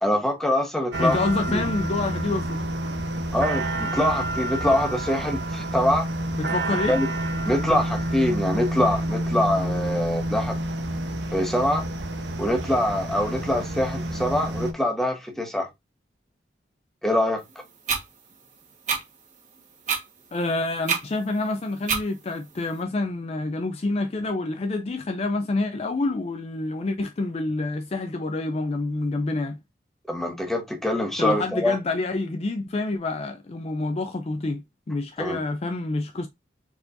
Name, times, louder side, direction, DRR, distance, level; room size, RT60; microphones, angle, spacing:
voice 1, 0.0-1.2 1.5-1.6 3.3-6.1 6.9-7.1 7.4-10.6 11.3-11.8 12.4-15.7 17.0-17.4 30.1-31.8 35.2-35.4, left 1 dB, ahead, 1.1 m, -24 dB
sound 1, 0.9-14.7, right 1 dB, 85° right, 0.9 m, -29 dB
voice 2, 1.0-2.7 6.4-6.9 20.3-29.6 31.2-36.3, left 2 dB, 35° left, 0.4 m, -27 dB
sound 2, 17.9-18.0 18.9-19.0 19.9-20.0 20.9-21.0 21.9-22.0, right 6 dB, 45° right, 1.3 m, -24 dB
4.5 x 4.1 x 2.6 m
head